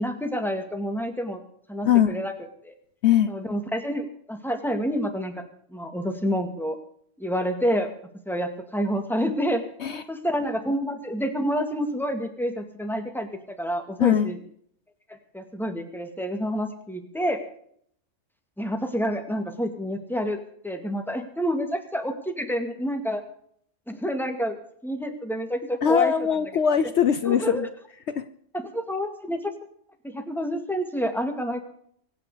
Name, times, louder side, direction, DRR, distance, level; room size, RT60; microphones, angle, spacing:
voice 1, 0.0-1.4 1.7-2.3 2.6-2.7 3.3-5.4 5.7-6.8 7.2-7.9 8.3-9.6 10.1-14.4 15.3-17.4 18.6-23.2 23.9-24.6 24.8-26.1 27.3-27.7 28.5-29.5 30.0-31.6, equal, ahead, 6 dB, 2.1 m, -28 dB
voice 2, 1.8-2.2 3.0-3.3 9.8-10.0 14.0-14.3 25.8-27.7 28.1-28.2, left 9 dB, 65° left, 12 dB, 1.0 m, -21 dB
24.0 x 9.3 x 5.0 m, 0.64 s
omnidirectional pair, 1.3 m